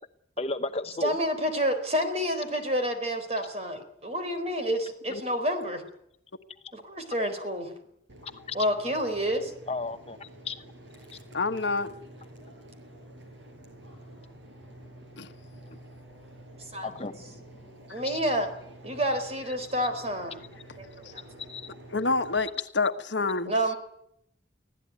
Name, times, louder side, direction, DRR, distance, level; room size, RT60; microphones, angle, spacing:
voice 1, 0.4-1.1 8.2-8.6 9.7-10.5 16.8-17.4 18.0-18.2 21.5-21.8, left 3 dB, 35° left, 0.9 m, -34 dB
voice 2, 1.0-5.8 6.7-7.7 8.5-9.5 16.7-16.9 17.9-18.5 18.8-20.4 20.8-21.3 23.5-23.8, equal, 35° right, 4.3 m, -29 dB
sound 1, 8.1-22.4, right 1 dB, 75° right, 6.0 m, -49 dB
voice 3, 11.3-11.9 15.2-15.3 21.9-22.5 22.7-23.5, left 3 dB, 70° left, 1.4 m, -27 dB
25.0 x 16.5 x 9.5 m
head